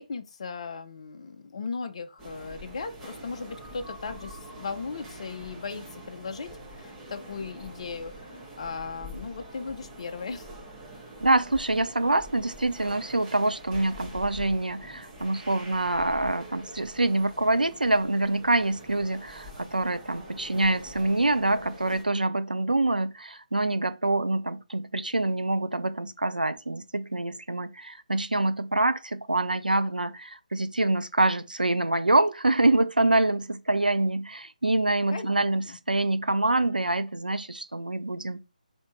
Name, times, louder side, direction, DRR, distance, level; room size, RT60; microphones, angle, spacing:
voice 1, 0.0-10.5 35.1-35.8, left 4 dB, 45° left, 0.5 m, -37 dB
sound 1, 2.2-22.0, right 1 dB, 10° right, 0.8 m, -45 dB
voice 2, 11.2-38.4, right 2 dB, 85° right, 0.4 m, -25 dB
3.4 x 2.7 x 4.3 m
figure-of-eight pair, 150°, 5 cm